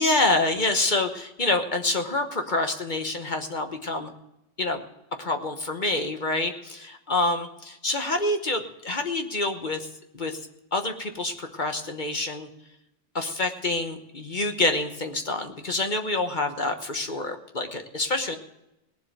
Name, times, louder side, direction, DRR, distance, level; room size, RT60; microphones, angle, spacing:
voice 1, 0.0-4.1 4.6-4.8 5.2-9.9 10.1-10.4 10.7-12.5 13.1-18.4, left 2 dB, 40° left, 6 dB, 1.2 m, -27 dB
18.0 x 7.8 x 6.5 m, 0.89 s
omnidirectional pair, 1.3 m